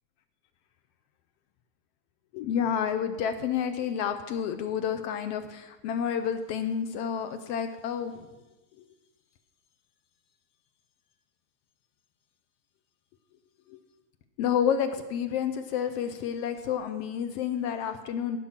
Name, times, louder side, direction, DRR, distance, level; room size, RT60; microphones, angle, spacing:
voice 1, 2.3-8.3 13.7-13.8 14.4-18.4, left 8 dB, 80° left, 8 dB, 1.4 m, -30 dB
18.0 x 6.1 x 5.8 m, 1.1 s
omnidirectional pair, 3.3 m